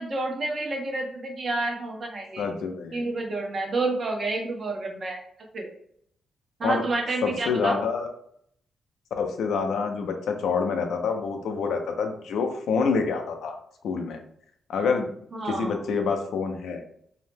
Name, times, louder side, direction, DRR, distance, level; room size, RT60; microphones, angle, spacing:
voice 1, 0.0-2.5 2.9-5.2 5.5-5.7 6.6-7.8 15.3-15.8, right 2 dB, 45° right, 1 dB, 0.7 m, -29 dB
voice 2, 2.4-3.1 6.6-6.8 7.2-8.1 9.2-13.6 13.8-14.2 14.7-15.1 15.4-16.8, left 5 dB, 80° left, 5 dB, 0.4 m, -27 dB
2.7 x 2.0 x 3.2 m, 0.69 s
cardioid pair, 90°, 0 cm